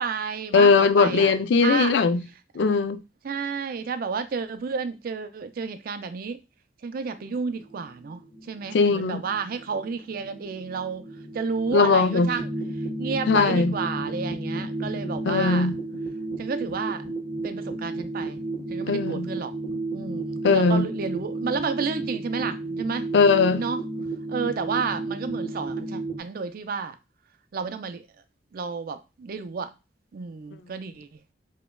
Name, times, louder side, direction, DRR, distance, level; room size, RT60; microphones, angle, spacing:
voice 1, 0.0-1.3 1.6-1.9 3.2-6.4 6.8-8.2 8.5-11.1 11.3-12.5 13.0-15.7 16.4-17.0 17.4-18.4 18.7-19.5 19.9-23.1 23.6-23.8 24.3-27.0 27.5-28.0 28.5-29.7 30.1-31.2, right 5 dB, 55° right, 0.4 m, -31 dB
voice 2, 0.5-2.2 2.5-3.0 8.7-9.2 11.7-12.3 13.3-13.8 15.3-15.8 18.9-19.3 20.4-20.9 23.1-23.6, left 4 dB, 70° left, 0.4 m, -19 dB
sound 1, 7.1-26.2, right 2 dB, 55° left, 1.1 m, -33 dB
5.0 x 2.2 x 2.2 m
head